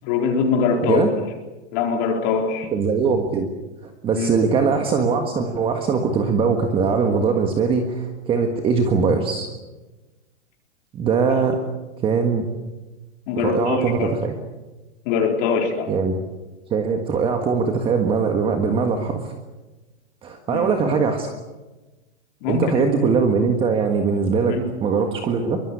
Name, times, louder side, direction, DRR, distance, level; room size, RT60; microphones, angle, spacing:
voice 1, 0.0-1.0 1.7-2.7 4.1-4.3 11.4-11.5 13.3-14.1 15.1-15.9 20.5-20.7 22.4-22.8 24.5-24.6, left 5 dB, 35° left, 2 dB, 4.2 m, -22 dB
voice 2, 2.7-3.5 3.8-9.5 10.9-11.6 12.0-12.5 13.4-14.3 15.9-16.2 16.7-19.3 20.2-21.3 22.5-25.6, right 5 dB, 15° right, 5 dB, 1.6 m, -21 dB
23.5 x 22.5 x 8.4 m, 1.1 s
hypercardioid pair, 165°, 34 cm